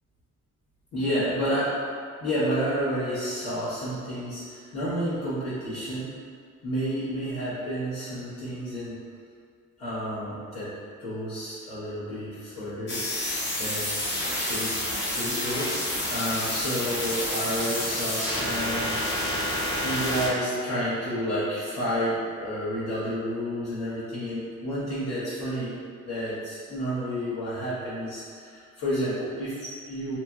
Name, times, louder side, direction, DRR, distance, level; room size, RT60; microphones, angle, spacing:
voice 1, 0.9-1.7 2.2-6.1 6.6-9.0 9.8-10.7 11.0-13.0 13.6-13.9 14.3-19.0 19.5-25.7 26.0-30.2, equal, 60° left, -13 dB, 1.0 m, -30 dB
sound 1, 12.9-20.3, left 1 dB, 35° left, 0.7 m, -29 dB
2.9 x 2.5 x 2.3 m, 2.1 s
cardioid pair, 90°, 30 cm